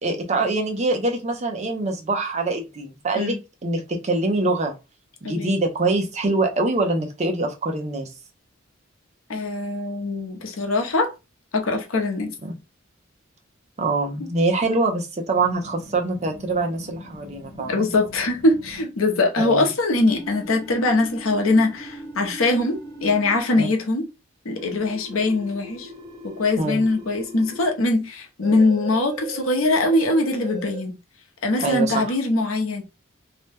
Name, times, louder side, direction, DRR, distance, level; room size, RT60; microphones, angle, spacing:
voice 1, 0.0-3.3 3.6-4.7 5.2-8.1 12.4-12.5 13.8-17.8 19.4-19.6 23.6-23.7 26.6-26.8 31.6-32.0, right 2 dB, 35° right, 0.6 m, -24 dB
voice 2, 9.3-11.1 11.5-12.3 17.6-24.1 24.4-25.9 26.4-31.0 31.4-32.8, left 2 dB, 80° left, 0.7 m, -22 dB
sound 1, 15.4-18.8 19.9-23.4 24.6-27.7 28.4-30.8, right 2 dB, 15° right, 1.4 m, -39 dB
2.8 x 2.1 x 3.3 m
head